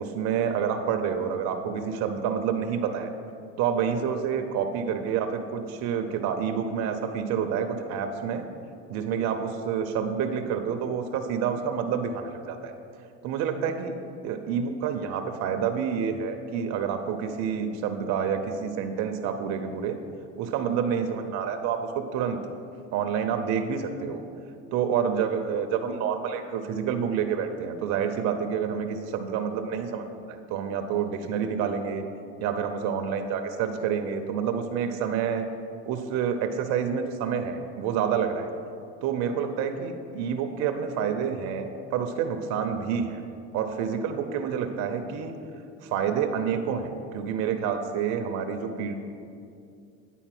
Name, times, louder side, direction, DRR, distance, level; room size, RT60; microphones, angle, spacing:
voice 1, 0.0-3.1 3.6-8.5 8.9-12.7 13.2-13.9 14.2-20.0 20.4-22.4 22.9-24.2 24.7-32.0 32.4-35.4 35.8-38.5 39.0-43.2 43.5-45.3 45.8-48.9, right 7 dB, 60° right, 6 dB, 0.6 m, -28 dB
9.1 x 4.1 x 5.9 m, 2.5 s
supercardioid pair, 95°, 30 cm